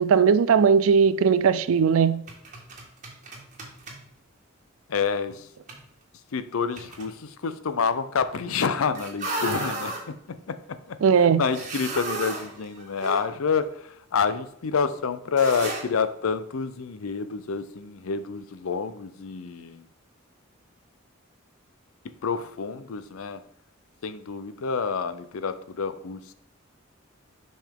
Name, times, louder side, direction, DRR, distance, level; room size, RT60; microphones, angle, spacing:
voice 1, 0.0-2.2 11.0-11.4, right 6 dB, 75° right, 0.4 m, -19 dB
sound 1, 2.3-4.0 5.7-5.8 6.8-7.1 8.9-10.0 11.4-13.2 13.6-13.7 15.4-15.8, right 2 dB, 35° right, 1.7 m, -34 dB
voice 2, 4.9-5.5 6.3-19.8 22.2-23.4 24.0-26.3, left 5 dB, 80° left, 0.5 m, -28 dB
7.3 x 5.6 x 3.6 m
head